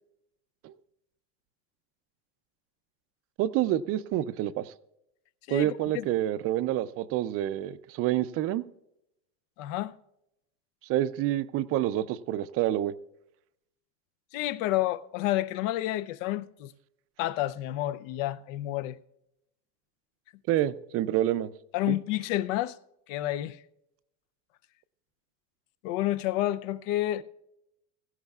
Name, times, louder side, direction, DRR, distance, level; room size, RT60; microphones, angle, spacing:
voice 1, 3.4-4.7 5.5-8.6 10.9-12.9 20.5-21.5 21.9-22.0, right 13 dB, 40° right, 0.4 m, -28 dB
voice 2, 5.5-6.1 9.6-9.9 14.3-16.7 17.2-19.0 21.7-22.8 23.1-23.6 25.8-27.2, left 15 dB, 75° left, 0.6 m, -29 dB
17.0 x 15.5 x 2.3 m
supercardioid pair, 145°, 39 cm